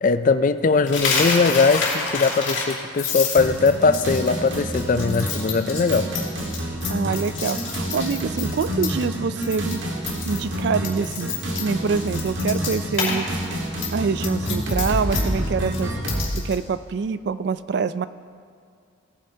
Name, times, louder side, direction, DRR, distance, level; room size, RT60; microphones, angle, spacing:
voice 1, 0.0-6.1, left 4 dB, 40° left, 12 dB, 0.4 m, -20 dB
Coin (dropping), 0.9-9.1 9.4-9.7 10.0-13.2 13.4-16.6, left 5 dB, 70° left, 3.0 m, -28 dB
sound 1, 3.3-16.3, equal, 75° right, 1.7 m, -28 dB
voice 2, 6.9-9.8 10.2-13.3 13.9-15.9 16.4-18.1, right 5 dB, 55° right, 14 dB, 0.3 m, -25 dB
17.5 x 9.6 x 2.8 m, 2.3 s
head